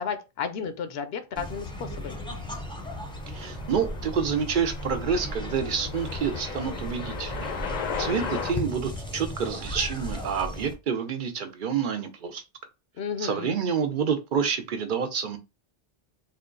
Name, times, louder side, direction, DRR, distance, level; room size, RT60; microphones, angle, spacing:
voice 1, 0.0-2.2 13.0-13.6, left 6 dB, 80° left, 0.8 m, -33 dB
sound 1, 1.4-10.7, equal, 5° left, 0.5 m, -36 dB
sound 2, 2.4-8.5, left 6 dB, 50° left, 0.6 m, -37 dB
voice 2, 3.3-7.5 8.0-12.4 13.2-15.4, right 6 dB, 60° right, 0.7 m, -28 dB
3.6 x 2.3 x 3.7 m
omnidirectional pair, 1.0 m